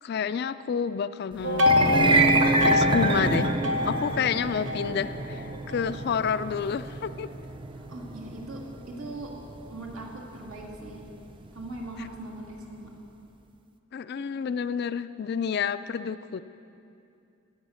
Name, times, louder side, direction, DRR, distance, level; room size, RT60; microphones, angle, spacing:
voice 1, 0.0-2.3 2.7-3.5 3.8-7.3 13.9-16.4, left 7 dB, 50° left, 13 dB, 0.3 m, -29 dB
sound 1, 1.4-5.9, left 3 dB, 60° right, 1.0 m, -26 dB
sound 2, 1.6-11.9, right 3 dB, 25° right, 0.4 m, -27 dB
voice 2, 7.7-9.4 9.7-11.1 11.5-12.9, right 2 dB, 80° right, -1 dB, 2.2 m, -40 dB
15.5 x 9.2 x 6.4 m, 2.6 s
head